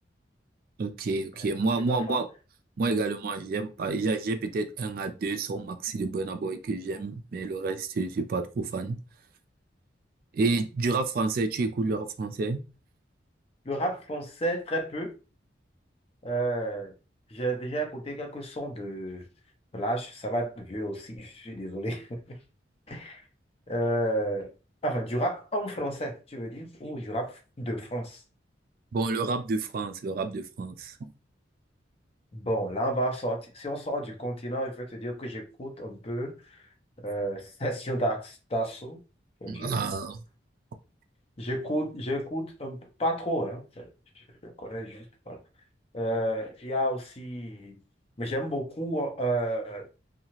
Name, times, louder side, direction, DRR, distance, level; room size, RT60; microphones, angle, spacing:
voice 1, 0.8-2.3 2.8-9.0 10.3-12.6 28.9-31.1 39.5-40.2, right 3 dB, 50° right, 0.3 m, -29 dB
voice 2, 1.9-2.2 13.7-15.1 16.2-16.9 17.3-19.3 19.7-22.4 22.9-23.2 23.7-24.5 24.8-28.2 32.3-36.6 37.0-39.0 39.4-39.7 41.4-43.9 44.4-45.4 45.9-47.8 48.2-49.8, right 1 dB, 30° left, 0.6 m, -31 dB
2.8 x 2.3 x 2.9 m
head